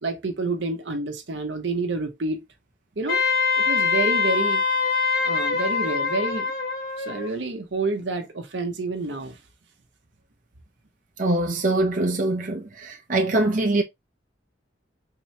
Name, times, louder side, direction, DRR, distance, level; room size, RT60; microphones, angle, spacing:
voice 1, 0.0-2.4 3.0-3.2 3.5-4.6 5.3-6.4 7.0-9.4, right 3 dB, 75° right, 0.9 m, -28 dB
Wind instrument woodwind instrument, 3.1-7.3, left 5 dB, 55° left, 2.0 m, -23 dB
voice 2, 11.2-13.8, right 2 dB, 45° right, 0.7 m, -23 dB
3.7 x 3.0 x 3.2 m
head